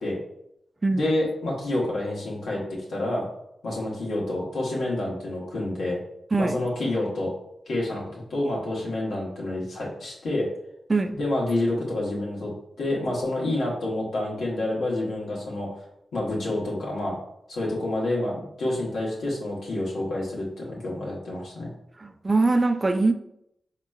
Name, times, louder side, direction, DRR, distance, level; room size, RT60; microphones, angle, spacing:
voice 1, 0.9-2.6 2.9-3.3 3.6-6.0 6.4-7.3 7.7-10.5 11.1-12.5 12.8-15.8 16.1-17.2 17.5-21.7, left 1 dB, 80° left, 1.1 m, -28 dB
voice 2, 6.3-6.6 10.9-11.2 22.0-23.1, right 3 dB, 40° right, 0.3 m, -22 dB
4.3 x 2.9 x 2.3 m
supercardioid pair, 45°, 0 cm